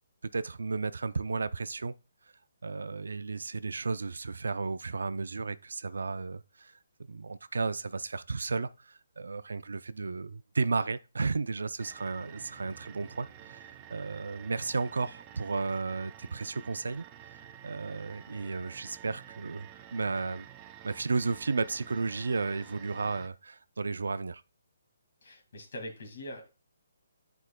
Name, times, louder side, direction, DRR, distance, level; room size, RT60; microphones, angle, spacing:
voice 1, 0.3-1.9 2.6-6.7 7.1-13.6 13.9-17.0 17.6-20.5 20.8-24.4, right 4 dB, 85° right, 0.4 m, -33 dB
sound 1, 11.8-23.3, right 10 dB, 20° right, 0.4 m, -50 dB
sound 2, 12.4-15.6, right 4 dB, 60° right, 1.0 m, -60 dB
voice 2, 25.2-26.5, left 1 dB, 60° left, 2.1 m, -42 dB
9.9 x 4.7 x 2.2 m
hypercardioid pair, 160°, 0 cm